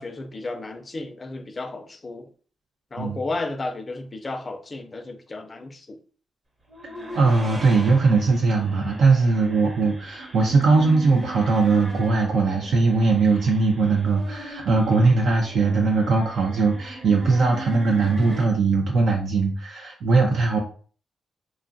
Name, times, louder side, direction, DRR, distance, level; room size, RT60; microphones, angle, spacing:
voice 1, 0.0-2.3 2.9-6.0, left 2 dB, 30° left, 0.4 m, -33 dB
sound 1, 6.7-18.4, right 1 dB, 30° right, 0.9 m, -39 dB
voice 2, 7.1-20.6, right 4 dB, 70° right, 0.5 m, -20 dB
2.9 x 2.4 x 2.4 m
cardioid pair, 90°, 0 cm